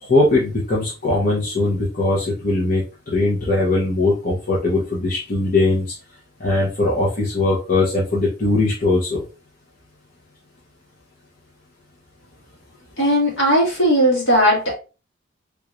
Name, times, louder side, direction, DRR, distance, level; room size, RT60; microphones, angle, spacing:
voice 1, 0.0-5.9 6.4-9.2, left 2 dB, 45° left, -6 dB, 0.8 m, -20 dB
voice 2, 13.0-14.8, equal, 70° left, -3 dB, 1.7 m, -17 dB
3.5 x 3.1 x 2.4 m, 0.32 s
head